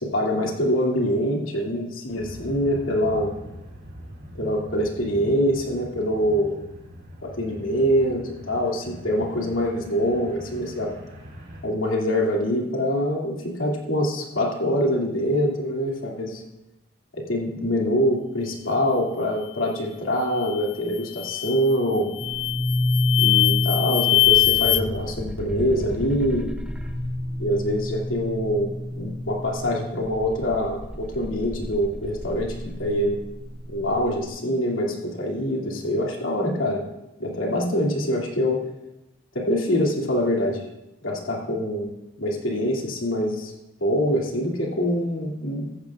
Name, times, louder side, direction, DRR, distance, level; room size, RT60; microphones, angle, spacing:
voice 1, 0.0-3.3 4.3-6.6 7.2-10.9 11.6-16.4 17.1-22.1 23.2-26.5 27.4-33.2 33.7-36.8 37.2-38.6 39.3-40.6 41.0-41.9 42.2-43.5 43.8-45.7, equal, 90° left, -1 dB, 2.5 m, -24 dB
sound 1, 2.1-11.6, equal, 55° right, 2.7 m, -43 dB
sound 2, 20.4-20.7 21.1-21.6 22.1-24.8, left 19 dB, 65° left, 0.4 m, -22 dB
sound 3, 22.2-34.1, left 1 dB, 5° right, 0.8 m, -29 dB
15.5 x 14.0 x 2.4 m, 0.94 s
head